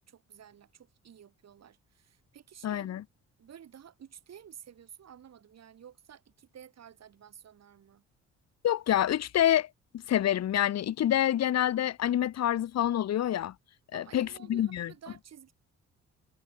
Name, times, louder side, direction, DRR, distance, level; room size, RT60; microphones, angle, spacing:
voice 1, 0.0-2.9 3.4-8.0 13.9-15.5, right 9 dB, 60° right, 5.3 m, -52 dB
voice 2, 2.6-3.0 8.6-9.7 10.1-13.5 13.9-14.9, left 11 dB, 60° left, 1.2 m, -27 dB
cardioid pair, 90°, 30 cm